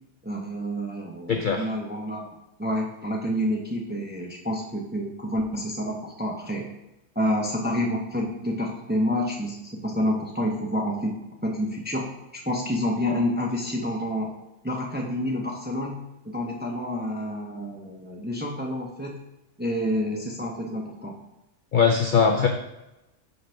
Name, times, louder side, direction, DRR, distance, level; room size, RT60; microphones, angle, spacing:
voice 1, 0.2-2.3 2.6-6.7 7.1-11.2 11.4-14.3 14.6-16.0 16.2-19.2 19.6-21.1, equal, 10° right, 0 dB, 0.5 m, -28 dB
voice 2, 1.3-1.6 21.7-22.5, left 6 dB, 75° left, 3 dB, 0.4 m, -20 dB
5.3 x 3.9 x 5.6 m, 0.95 s
omnidirectional pair, 1.5 m